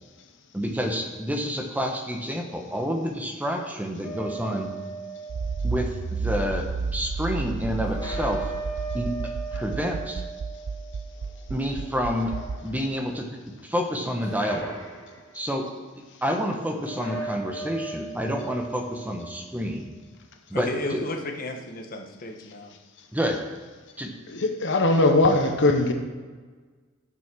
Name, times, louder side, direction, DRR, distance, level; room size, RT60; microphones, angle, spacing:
voice 1, 0.5-4.7 5.6-8.5 8.9-10.2 11.5-12.3 12.6-14.8 15.3-15.7 16.2-19.9 20.5-21.0 23.1-23.4 24.0-24.1, equal, 10° right, 0.9 m, -29 dB
sound 1, 4.0-6.1 7.8-11.6 12.1-13.1 14.2-15.3 16.8-19.5, right 3 dB, 20° left, 2.1 m, -38 dB
Accelerating revving vroom, 5.3-12.6, right 4 dB, 80° right, 0.5 m, -31 dB
voice 2, 20.5-22.7, left 1 dB, 45° left, 1.2 m, -33 dB
voice 3, 24.3-25.9, left 2 dB, 60° left, 1.0 m, -20 dB
10.5 x 6.0 x 6.1 m
head